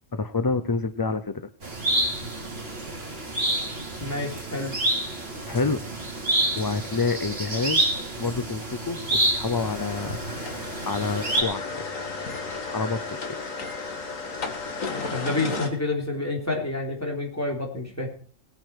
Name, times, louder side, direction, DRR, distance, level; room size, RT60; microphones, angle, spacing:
voice 1, 0.1-1.4 5.5-5.8 6.6-7.8 8.2-10.2 10.9-11.8 12.7-13.0, left 4 dB, 40° left, 11 dB, 0.3 m, -27 dB
sound 1, 1.6-11.4, right 1 dB, 50° right, 3.3 m, -28 dB
voice 2, 4.0-4.7 15.1-18.1, left 2 dB, 10° left, -1 dB, 3.3 m, -28 dB
sound 2, 9.5-15.7, left 4 dB, 80° left, 2.2 m, -34 dB
20.0 x 9.3 x 4.6 m, 0.43 s
omnidirectional pair, 1.4 m